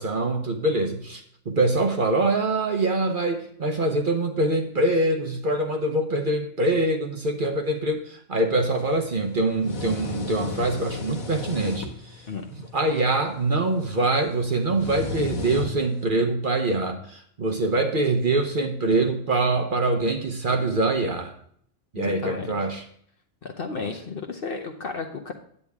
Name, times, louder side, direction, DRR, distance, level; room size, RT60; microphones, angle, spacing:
voice 1, 0.0-12.2 12.5-21.3 21.9-22.8, right 2 dB, 45° right, 4 dB, 0.9 m, -24 dB
sound 1, 8.6-16.1, left 4 dB, 80° left, 1.6 m, -35 dB
voice 2, 21.9-22.6 23.4-25.3, left 4 dB, 50° left, 3 dB, 0.9 m, -33 dB
9.7 x 8.0 x 3.5 m, 0.63 s
omnidirectional pair, 1.4 m